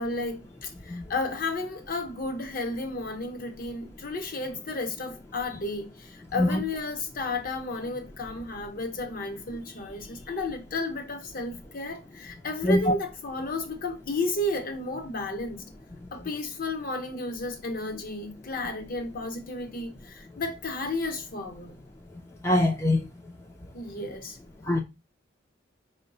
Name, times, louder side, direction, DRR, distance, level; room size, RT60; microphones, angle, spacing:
voice 1, 0.0-15.6 16.1-21.7 23.7-24.4, left 2 dB, 50° left, 0.8 m, -33 dB
voice 2, 22.4-23.0 24.7-24.8, left 1 dB, 15° left, 0.4 m, -22 dB
4.7 x 2.1 x 3.8 m
head